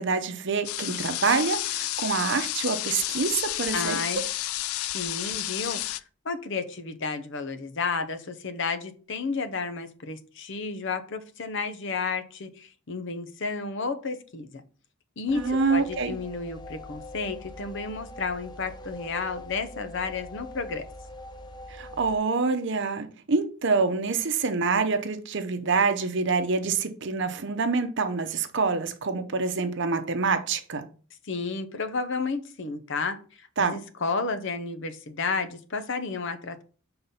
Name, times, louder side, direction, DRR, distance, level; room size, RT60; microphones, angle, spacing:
voice 1, 0.0-4.0 15.3-16.1 21.7-30.9 33.6-33.8, right 4 dB, 55° right, 0.7 m, -26 dB
sound 1, 0.6-6.0, left 15 dB, 90° left, 0.4 m, -31 dB
voice 2, 3.7-4.2 4.9-14.5 15.2-20.9 31.2-36.6, left 4 dB, 60° left, 0.8 m, -32 dB
sound 2, 15.3-22.1, left 1 dB, 20° left, 0.5 m, -42 dB
5.7 x 3.9 x 5.5 m
head